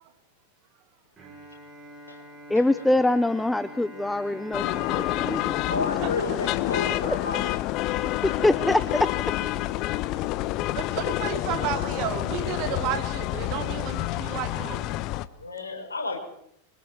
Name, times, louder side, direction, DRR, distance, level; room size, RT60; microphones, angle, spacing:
Bowed string instrument, 1.2-7.3, right 1 dB, 25° right, 7.4 m, -45 dB
voice 1, 2.5-5.6 7.8-9.1 9.6-9.7, left 2 dB, 5° left, 14 dB, 0.9 m, -24 dB
sound 1, 4.5-15.3, left 16 dB, 40° left, 1.1 m, -28 dB
voice 2, 5.7-7.6 15.4-16.2, left 3 dB, 75° left, 1 dB, 7.0 m, -31 dB
voice 3, 10.3-14.9, right 11 dB, 40° right, 7 dB, 3.2 m, -33 dB
26.5 x 25.0 x 4.7 m, 0.72 s
figure-of-eight pair, 90°, 0 cm